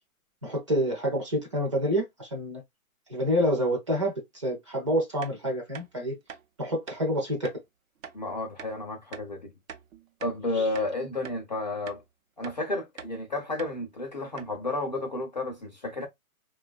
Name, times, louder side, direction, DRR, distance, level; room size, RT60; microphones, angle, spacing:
voice 1, 0.4-2.6 3.1-6.2 6.6-7.5 10.5-10.7, equal, 25° right, 0.5 m, -28 dB
sound 1, 5.2-5.4 5.7-5.9 6.3-6.4 6.9-7.0 7.4-7.6 8.0-8.2 8.6-8.7 9.1-9.3 9.7-10.4 10.7-10.9 11.2-11.4 11.9-12.0 12.4-12.6 13.0-13.2 13.6-13.8 14.0-14.1 14.4-14.6, right 7 dB, 65° right, 0.7 m, -43 dB
voice 2, 8.1-9.5 10.2-12.0 12.4-16.1, left 2 dB, 35° left, 0.4 m, -32 dB
2.9 x 2.2 x 2.4 m
hypercardioid pair, 150°, 43 cm